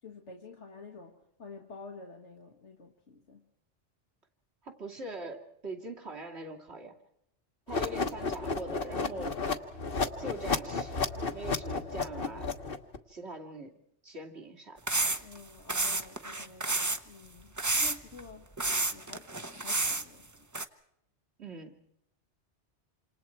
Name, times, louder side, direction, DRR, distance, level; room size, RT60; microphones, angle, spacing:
voice 1, 0.0-3.5 15.2-16.7 17.0-18.5 18.9-20.5, left 4 dB, 80° left, 3 dB, 2.1 m, -50 dB
voice 2, 4.6-7.0 7.7-9.4 10.2-12.5 13.1-13.7 14.0-14.8 21.4-21.7, right 2 dB, 65° right, 1 dB, 3.2 m, -42 dB
sound 1, 7.7-13.0, left 4 dB, 50° left, 1.4 m, -32 dB
sound 2, 14.9-15.4 15.7-17.0 17.6-18.2 18.6-20.0 20.5-20.6, right 2 dB, 15° right, 0.8 m, -30 dB
28.5 x 27.0 x 4.6 m, 0.78 s
omnidirectional pair, 1.2 m